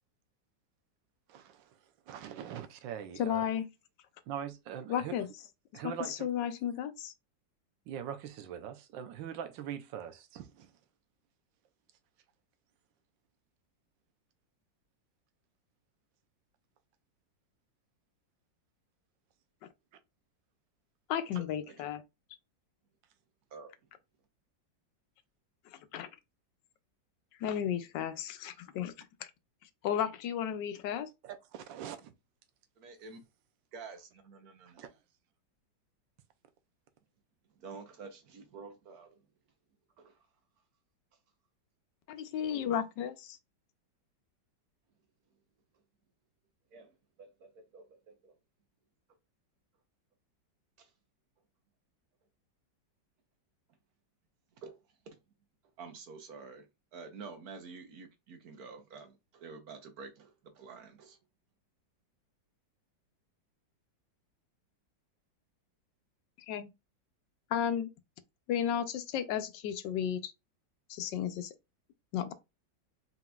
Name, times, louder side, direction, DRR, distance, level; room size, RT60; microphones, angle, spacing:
voice 1, 1.3-1.8 2.1-3.5 4.3-5.2 5.7-6.3 7.9-10.7 31.2-32.1 34.8-34.9, right 9 dB, 85° right, 1.3 m, -42 dB
voice 2, 3.2-3.7 4.9-5.3 6.1-7.1 21.1-22.0 25.7-26.1 27.4-29.3 29.8-31.1 42.1-43.4 66.5-66.7 67.5-67.9 68.5-70.3 70.9-71.5 72.1-72.3, left 9 dB, 75° left, 1.2 m, -33 dB
voice 3, 32.8-33.2 33.7-34.8 37.6-39.2 40.0-40.2 42.5-42.6 46.7-48.3 50.8-50.9 54.6-54.8 55.1-55.2 55.8-61.2, right 4 dB, 60° right, 1.2 m, -49 dB
4.2 x 3.8 x 2.3 m
omnidirectional pair, 2.0 m